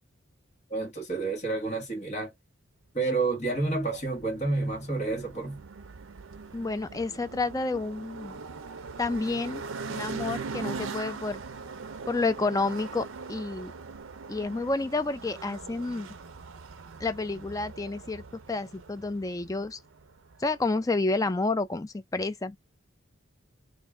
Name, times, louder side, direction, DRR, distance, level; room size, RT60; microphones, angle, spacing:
voice 1, 0.7-2.3 2.9-5.6, right 3 dB, 35° left, 1.3 m, -29 dB
sound 1, 3.4-20.8, right 4 dB, 75° right, 0.5 m, -41 dB
voice 2, 6.5-8.4 9.0-9.6 9.9-11.4 12.1-13.7 14.3-16.1 17.0-19.8 20.4-22.6, left 3 dB, 15° left, 0.3 m, -30 dB
3.5 x 2.6 x 3.2 m
head